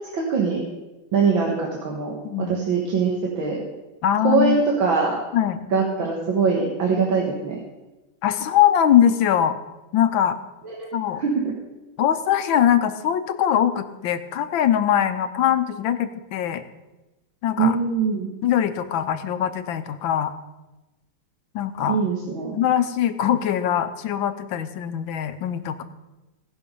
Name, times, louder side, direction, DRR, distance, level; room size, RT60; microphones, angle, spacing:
voice 1, 0.1-0.6 1.1-3.6 4.2-5.2 5.7-7.6 10.6-10.8 11.2-11.5 17.6-18.3 21.9-22.6, right 5 dB, 80° right, -1 dB, 2.3 m, -22 dB
voice 2, 2.2-2.6 4.0-4.6 5.3-5.6 8.2-9.6 9.9-10.4 10.9-11.2 12.0-16.6 17.4-17.8 18.4-20.3 21.5-22.0 22.5-25.8, left 10 dB, 80° left, 10 dB, 1.5 m, -22 dB
18.0 x 6.1 x 5.4 m, 1.1 s
omnidirectional pair, 2.1 m